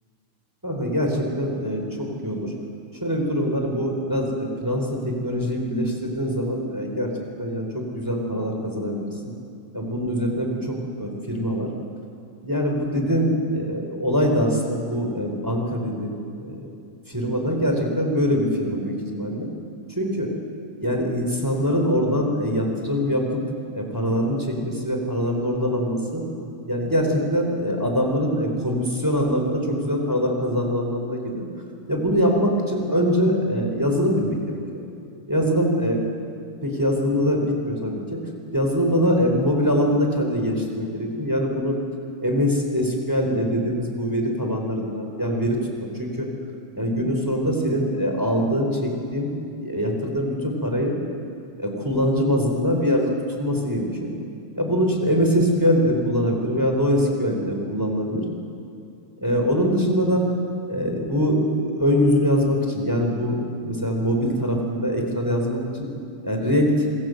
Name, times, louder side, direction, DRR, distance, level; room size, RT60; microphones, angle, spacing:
voice 1, 0.6-2.5 3.0-7.1 7.4-9.1 9.7-11.7 12.4-16.1 16.4-16.6 17.1-19.5 19.9-20.3 20.8-23.4 23.7-26.2 26.7-31.5 31.9-34.6 35.3-36.0 36.6-38.2 38.5-41.8 42.2-46.3 46.7-49.3 49.6-50.9 51.6-53.1 53.4-54.1 54.5-58.2 59.2-60.3 60.7-65.9 66.2-66.7, equal, 5° right, 1 dB, 3.0 m, -23 dB
26.5 x 22.5 x 7.9 m, 2.6 s
omnidirectional pair, 5.7 m